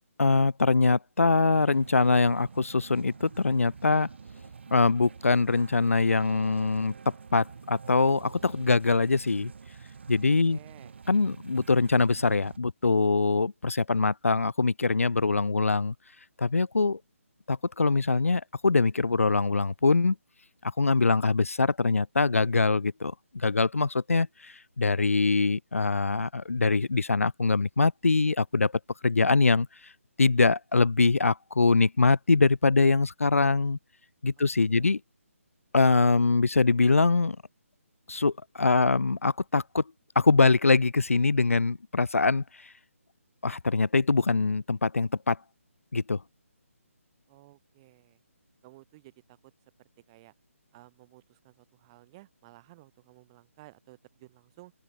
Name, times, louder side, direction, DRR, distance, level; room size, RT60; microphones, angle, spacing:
voice 1, 0.2-4.1 4.7-6.9 7.3-9.5 10.1-10.6 11.1-15.9 16.4-17.0 17.5-20.2 20.6-28.7 29.0-29.9 30.2-33.8 34.2-35.0 35.7-37.4 38.1-39.8 40.2-42.7 43.4-45.4 45.9-46.2, left 3 dB, 70° left, 0.7 m, -23 dB
sound 1, 1.5-12.6, right 5 dB, 50° right, 2.0 m, -47 dB
voice 2, 10.4-10.9 34.4-35.0 47.3-48.2 48.6-49.4 50.0-50.3 50.7-54.7, right 19 dB, 20° right, 6.8 m, -55 dB
open air
figure-of-eight pair, 145°, 8 cm